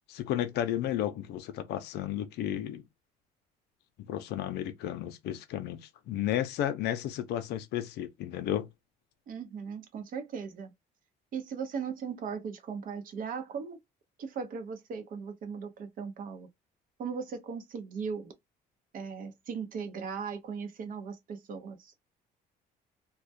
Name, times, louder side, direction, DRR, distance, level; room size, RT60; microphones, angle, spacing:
voice 1, 0.1-2.8 4.1-8.7, left 11 dB, 80° left, 0.5 m, -33 dB
voice 2, 9.3-10.7 11.3-13.8 14.2-16.5 17.0-18.3 18.9-21.9, right 6 dB, 55° right, 0.7 m, -38 dB
2.3 x 2.1 x 2.5 m
cardioid pair, 110°, 17 cm